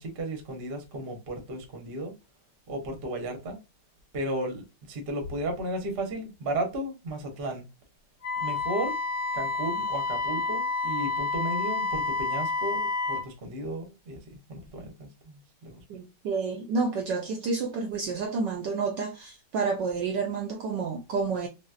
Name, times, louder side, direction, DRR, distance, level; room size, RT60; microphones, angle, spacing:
voice 1, 0.0-2.1 2.7-3.6 4.1-7.7 8.4-8.9 9.3-14.2 14.5-15.8, right 1 dB, 50° right, 0.7 m, -34 dB
Wind instrument woodwind instrument, 8.2-13.3, left 3 dB, 45° left, 0.4 m, -29 dB
voice 2, 15.9-21.5, right 4 dB, 75° right, 1.0 m, -29 dB
3.9 x 2.1 x 2.3 m
omnidirectional pair, 2.3 m